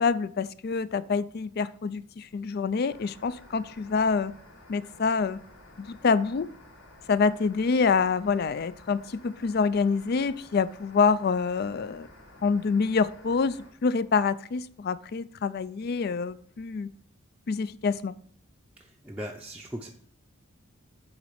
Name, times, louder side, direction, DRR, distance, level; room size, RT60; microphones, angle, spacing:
voice 1, 0.0-4.3 4.7-5.4 5.8-6.5 7.1-12.1 12.4-16.9 17.5-18.2, left 5 dB, 45° left, 16 dB, 0.3 m, -26 dB
sound 1, 2.9-13.7, left 1 dB, 80° left, 3.3 m, -52 dB
voice 2, 18.8-19.9, equal, 5° right, -2 dB, 0.6 m, -39 dB
7.9 x 4.1 x 6.8 m, 0.63 s
head